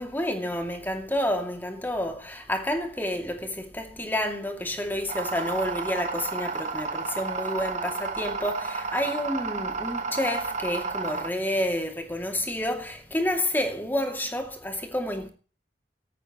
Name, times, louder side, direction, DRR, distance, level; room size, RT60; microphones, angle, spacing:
voice 1, 0.0-15.3, left 1 dB, 10° left, 2.6 m, -29 dB
sound 1, 5.1-11.3, right 4 dB, 40° right, 1.6 m, -32 dB
17.5 x 14.0 x 3.1 m
head